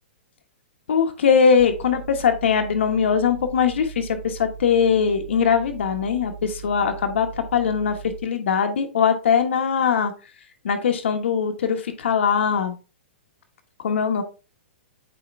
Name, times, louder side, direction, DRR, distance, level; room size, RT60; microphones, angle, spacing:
voice 1, 0.9-7.9 8.2-10.1 10.6-12.7 13.8-14.2, left 6 dB, 80° left, 5 dB, 1.3 m, -21 dB
sound 1, 1.6-8.4, right 7 dB, 20° left, 1.1 m, -39 dB
8.4 x 3.4 x 3.2 m, 0.33 s
hypercardioid pair, 160°, 6 cm